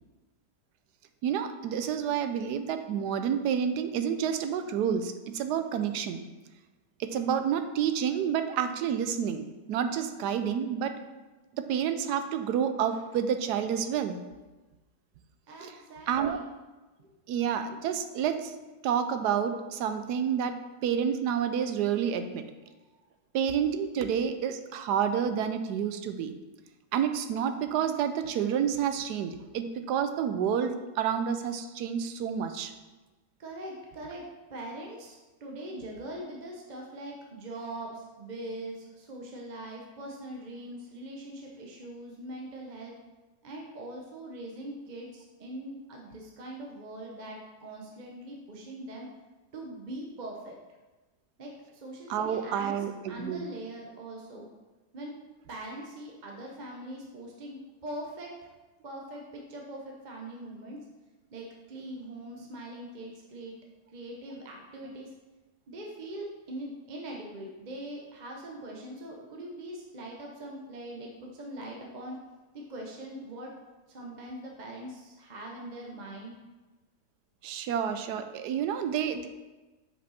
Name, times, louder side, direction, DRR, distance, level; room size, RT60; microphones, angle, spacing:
voice 1, 1.2-6.2 7.0-11.0 11.5-14.2 15.6-15.7 16.1-16.4 17.3-18.5 18.8-22.5 23.3-26.4 26.9-32.7 52.1-53.5 77.4-79.3, right 8 dB, 85° right, 8 dB, 1.2 m, -29 dB
voice 2, 15.5-16.4 17.0-17.1 33.4-34.2 34.5-42.9 43.4-49.1 49.5-50.6 51.4-52.7 53.1-54.5 54.9-55.1 55.5-58.3 58.8-59.2 59.5-60.9 61.3-63.5 63.9-65.1 65.7-72.2 72.5-73.5 73.9-76.4, right 1 dB, 40° right, -1 dB, 0.7 m, -42 dB
6.8 x 5.2 x 4.2 m, 1.2 s
omnidirectional pair, 1.7 m